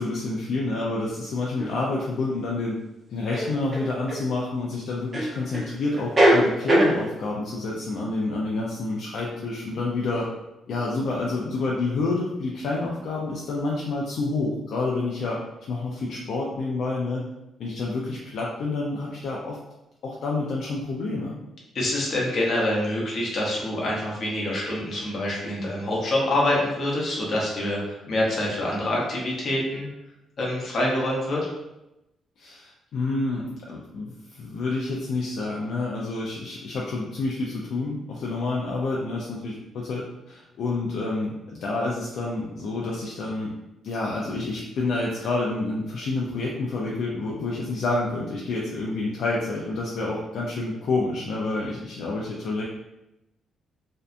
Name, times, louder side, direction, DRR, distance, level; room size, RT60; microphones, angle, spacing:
voice 1, 0.0-2.7 3.1-10.3 10.7-15.4 15.7-17.3 17.6-19.6 20.0-21.3 32.4-43.5 43.8-52.6, left 3 dB, 65° left, -3 dB, 0.4 m, -28 dB
sound 1, 1.6-1.7 3.3-4.2 5.1-5.7 6.0-7.0, right 1 dB, 20° right, 0.7 m, -20 dB
voice 2, 21.7-29.9 30.4-31.4, left 1 dB, 45° left, -3 dB, 0.8 m, -26 dB
2.6 x 2.2 x 2.4 m, 0.93 s
cardioid pair, 150°, 0 cm